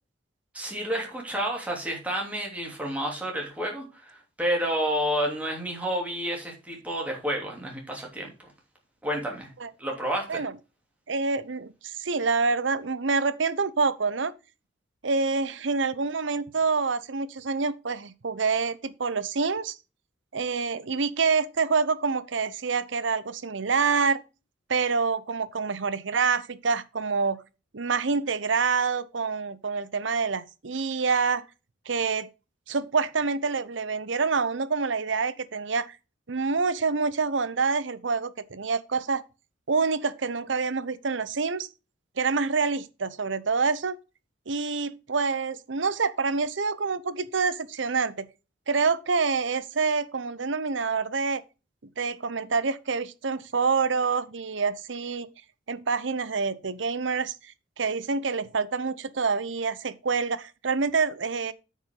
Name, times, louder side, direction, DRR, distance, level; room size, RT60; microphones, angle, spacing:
voice 1, 0.5-8.3 9.0-9.5 9.8-10.4, equal, 10° right, 2.9 m, -30 dB
voice 2, 11.1-14.3 15.0-19.8 20.3-24.2 24.7-27.4 27.7-31.4 31.9-32.3 32.7-36.0 36.3-39.2 39.7-41.7 42.2-44.0 44.5-48.3 48.7-51.4 52.0-55.3 55.7-61.5, right 4 dB, 80° right, 0.8 m, -27 dB
9.1 x 5.3 x 5.3 m
head